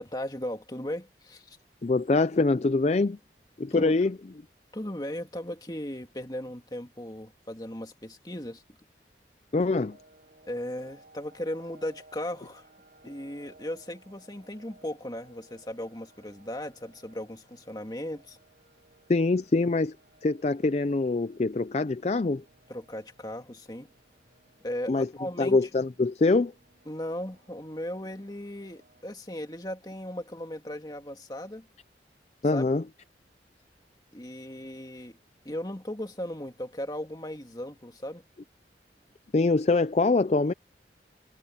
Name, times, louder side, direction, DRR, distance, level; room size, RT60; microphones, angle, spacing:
voice 1, 0.0-1.6 3.7-4.0 4.7-8.6 10.4-12.6 13.0-18.4 22.7-23.9 24.6-25.6 26.9-31.7 32.5-32.7 34.1-35.2 35.4-38.2, left 1 dB, 20° left, 2.2 m, -37 dB
voice 2, 1.8-3.2 3.6-4.2 9.5-10.0 19.1-20.0 20.2-22.4 24.9-25.1 25.4-26.5 32.4-32.8 39.3-40.5, left 3 dB, 35° left, 0.4 m, -24 dB
sound 1, 9.7-29.0, right 2 dB, 55° right, 7.2 m, -60 dB
head